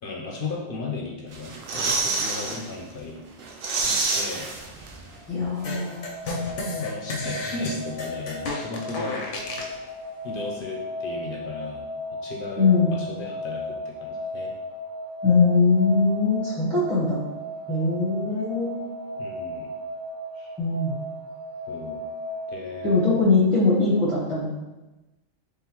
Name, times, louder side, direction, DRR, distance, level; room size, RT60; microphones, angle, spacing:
voice 1, 0.0-3.2 4.1-4.4 6.8-9.3 10.2-11.8 12.2-14.5 19.2-19.7 20.4-20.5 21.7-22.0 22.5-23.0, left 3 dB, 55° left, -1 dB, 0.7 m, -35 dB
sound 1, 1.3-2.6 3.0-3.1 3.4-5.2 5.4-5.5, right 3 dB, 60° right, 0.7 m, -27 dB
sound 2, 5.1-23.2, left 1 dB, 90° right, 1.3 m, -36 dB
voice 2, 5.3-6.0 12.6-12.9 15.2-17.2 17.7-18.8 20.6-20.9 22.8-24.5, left 3 dB, ahead, -10 dB, 0.9 m, -21 dB
sound 3, 5.6-9.8, left 2 dB, 90° left, 1.0 m, -32 dB
3.8 x 3.4 x 3.0 m, 1.1 s
omnidirectional pair, 1.2 m